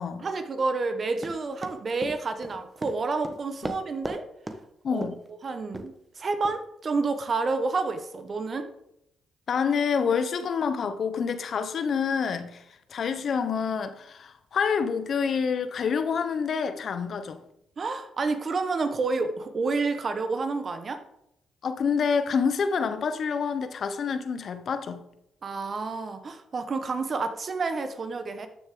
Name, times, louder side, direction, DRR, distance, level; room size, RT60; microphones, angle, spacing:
voice 1, 0.2-4.3 4.9-5.0 5.4-8.7 17.8-21.0 25.4-28.5, right 3 dB, 45° right, 1.2 m, -29 dB
Run, 1.2-4.2 4.5-4.6 5.0-5.3 5.7-5.9 6.4-6.6, right 1 dB, 15° right, 1.2 m, -36 dB
voice 2, 4.8-5.1 9.5-12.6 12.9-17.4 21.6-25.0, left 6 dB, 60° left, 0.9 m, -27 dB
13.0 x 6.5 x 3.8 m
supercardioid pair, 60°, 0 cm